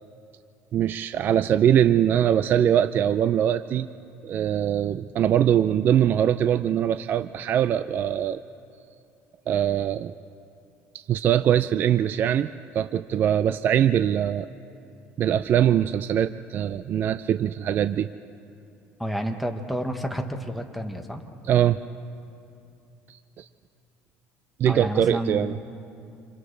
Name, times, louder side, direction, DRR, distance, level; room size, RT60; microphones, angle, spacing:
voice 1, 0.7-3.9 4.2-8.4 9.5-10.1 10.9-12.5 12.7-14.5 15.2-18.1 21.5-21.8 23.1-23.5 24.6-25.6, right 10 dB, 40° right, 12 dB, 0.4 m, -22 dB
voice 2, 19.0-21.2 24.6-25.5, equal, ahead, 3 dB, 1.2 m, -30 dB
29.5 x 27.5 x 3.3 m, 2.6 s
cardioid pair, 140°, 5 cm